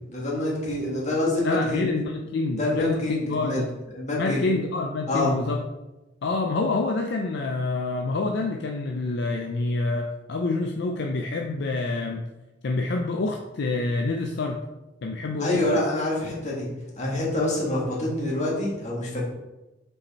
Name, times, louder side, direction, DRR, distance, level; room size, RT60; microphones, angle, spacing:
voice 1, 0.1-1.9 2.6-3.6 3.9-4.4 5.1-5.3 15.4-16.7 17.0-19.2, left 1 dB, 40° left, -4 dB, 1.8 m, -26 dB
voice 2, 1.4-3.7 4.2-5.6 6.2-12.2 12.6-14.6 15.0-15.6, left 3 dB, 65° left, 3 dB, 0.5 m, -27 dB
5.2 x 4.7 x 4.1 m, 1.1 s
head